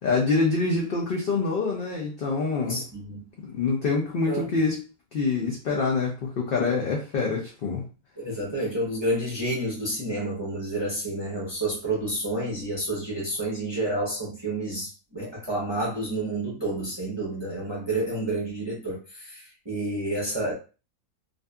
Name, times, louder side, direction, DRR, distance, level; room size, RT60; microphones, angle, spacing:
voice 1, 0.0-2.8 3.4-4.8 5.1-7.8, left 4 dB, 80° left, -1 dB, 0.5 m, -26 dB
voice 2, 2.6-3.2 4.3-4.4 8.2-20.5, right 1 dB, 30° right, -5 dB, 0.5 m, -29 dB
2.6 x 2.4 x 2.2 m, 0.33 s
omnidirectional pair, 1.6 m